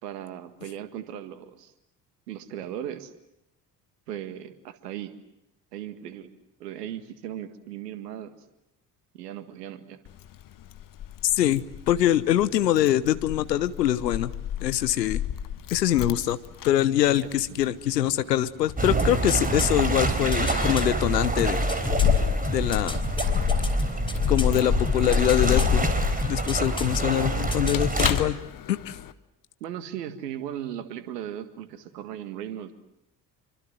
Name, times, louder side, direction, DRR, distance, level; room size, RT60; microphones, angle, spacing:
voice 1, 0.0-1.7 2.3-3.1 4.1-5.1 5.7-8.3 9.1-10.0 17.5-17.6 29.6-32.7, right 10 dB, 70° right, 11 dB, 1.9 m, -37 dB
Keys jangling, 10.1-29.1, left 10 dB, 40° left, 1.3 m, -30 dB
voice 2, 11.2-14.3 14.6-15.2 15.7-16.4 16.6-21.7 22.5-23.0 24.3-25.9 26.3-28.4 28.7-29.0, left 12 dB, 75° left, 14 dB, 1.0 m, -24 dB
sound 1, 18.8-28.1, right 2 dB, 15° right, 4.6 m, -27 dB
sound 2, 19.0-20.8 21.4-24.6 24.8-25.8 26.2-27.0 27.2-28.2 28.5-28.6, left 2 dB, 10° left, 4.4 m, -34 dB
27.0 x 24.5 x 7.8 m, 0.86 s
figure-of-eight pair, 50°, 49 cm